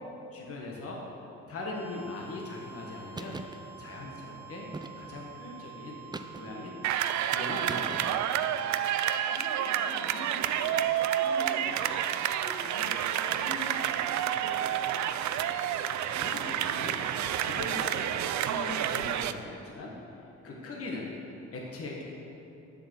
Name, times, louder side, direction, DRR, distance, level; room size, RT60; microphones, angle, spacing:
voice 1, 0.3-1.0 1.5-3.4 3.8-4.7 5.0-6.0 6.3-6.7 7.3-8.2 15.7-17.0 17.4-21.1 21.5-22.0, left 2 dB, 50° left, -2 dB, 1.5 m, -40 dB
sound 1, 1.5-16.8, right 10 dB, 20° left, 0.9 m, -49 dB
sound 2, 3.1-3.6 4.7-5.3 6.1-6.7 7.7-8.3, right 3 dB, 15° right, 0.5 m, -41 dB
voice 2, 3.9-4.3 9.3-11.8 12.2-15.0 20.4-20.9, left 1 dB, 85° left, -3 dB, 1.9 m, -45 dB
sound 3, 6.8-19.3, right 10 dB, 70° right, 0.5 m, -29 dB
7.8 x 6.9 x 6.1 m, 3.0 s
cardioid pair, 90°, 30 cm